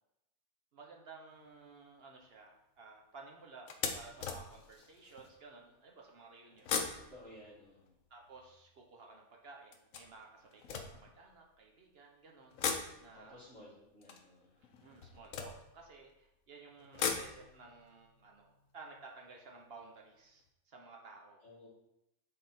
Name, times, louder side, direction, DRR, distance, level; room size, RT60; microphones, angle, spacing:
voice 1, 0.7-3.7 3.9-7.1 8.1-13.4 14.8-21.4, right 4 dB, 50° right, 0 dB, 1.1 m, -55 dB
sound 1, 1.3-1.6 2.2-2.4 2.8-2.9 3.7-5.4 6.5-8.8 9.7-11.7 12.4-16.2 16.7-19.7 20.0-20.1 20.4-20.5, left 6 dB, 70° left, 1.1 m, -41 dB
voice 2, 6.9-7.9 13.1-14.6 21.4-21.7, left 1 dB, 50° left, -9 dB, 2.0 m, -56 dB
6.5 x 4.1 x 4.3 m, 0.87 s
omnidirectional pair, 1.5 m